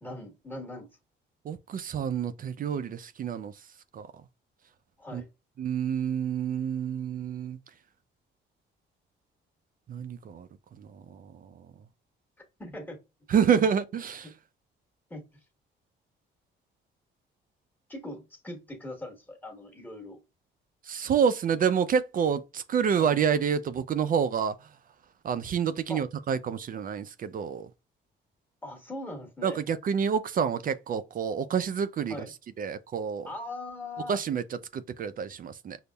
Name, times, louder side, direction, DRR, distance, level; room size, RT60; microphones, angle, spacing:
voice 1, 0.0-0.9 5.0-5.3 12.6-13.0 13.5-13.6 14.2-14.3 15.1-15.3 17.9-20.2 23.0-23.1 25.9-26.0 28.6-29.6 32.1-32.3 33.2-34.2, left 1 dB, 10° left, 1.3 m, -40 dB
voice 2, 1.4-3.5 3.9-4.1 5.1-5.2 5.6-7.6 9.9-10.5 10.8-11.6 13.3-14.3 20.8-24.6 25.2-27.7 29.4-32.2 32.6-33.3 34.1-35.8, right 7 dB, 45° right, 0.4 m, -28 dB
5.2 x 2.0 x 2.2 m
cardioid pair, 90°, 20 cm